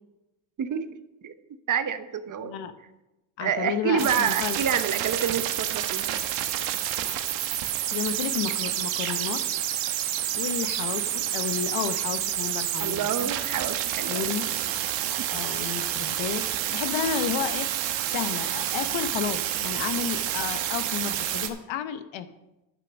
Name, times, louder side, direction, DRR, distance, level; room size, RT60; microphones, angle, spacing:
voice 1, 0.6-0.9 1.2-1.3 1.7-2.5 3.4-6.2 12.8-14.3, right 8 dB, 45° right, 10 dB, 0.9 m, -28 dB
voice 2, 2.4-2.7 3.4-4.6 7.9-9.4 10.3-13.3 14.1-14.5 15.3-17.7 18.1-22.3, left 9 dB, 80° left, 11 dB, 0.9 m, -32 dB
sound 1, 4.0-21.5, right 11 dB, 80° right, 1.1 m, -29 dB
11.0 x 5.9 x 6.2 m, 0.97 s
cardioid pair, 95°, 45 cm